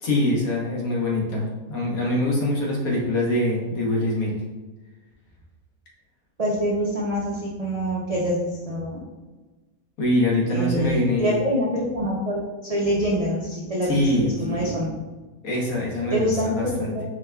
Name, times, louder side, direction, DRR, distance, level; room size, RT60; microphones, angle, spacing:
voice 1, 0.0-4.3 10.0-11.4 13.9-14.8 15.4-16.9, left 1 dB, 75° left, -3 dB, 1.4 m, -24 dB
voice 2, 6.4-9.0 10.5-14.9 16.1-17.0, equal, 60° right, -5 dB, 0.4 m, -25 dB
4.6 x 3.4 x 2.3 m, 1.2 s
omnidirectional pair, 1.5 m